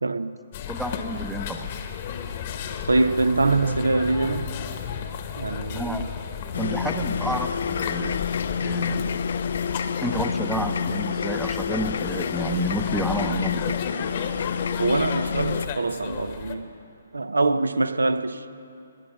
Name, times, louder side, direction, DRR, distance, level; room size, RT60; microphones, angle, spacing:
voice 1, 0.0-0.3 2.8-4.5 5.4-6.1 14.8-16.7 17.1-18.5, right 3 dB, 80° right, 0.5 m, -24 dB
sound 1, 0.5-16.6, left 7 dB, 40° left, 1.1 m, -34 dB
voice 2, 0.7-1.7 5.7-6.1 6.6-8.2 8.6-9.2 10.0-13.8, right 1 dB, 5° right, 0.6 m, -30 dB
sound 2, 6.5-15.7, left 6 dB, 60° left, 0.3 m, -28 dB
19.5 x 8.6 x 6.2 m
figure-of-eight pair, 135°, 0 cm